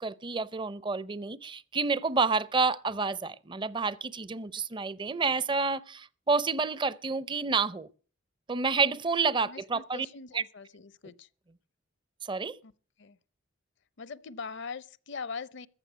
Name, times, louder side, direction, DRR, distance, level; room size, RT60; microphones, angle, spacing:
voice 1, 0.0-7.9 8.5-10.1 10.3-10.4 12.3-12.6, right 4 dB, 25° right, 0.5 m, -29 dB
voice 2, 9.4-11.3 12.6-12.7 13.0-13.2 14.0-15.7, left 5 dB, 60° left, 0.6 m, -41 dB
14.5 x 6.6 x 9.2 m
head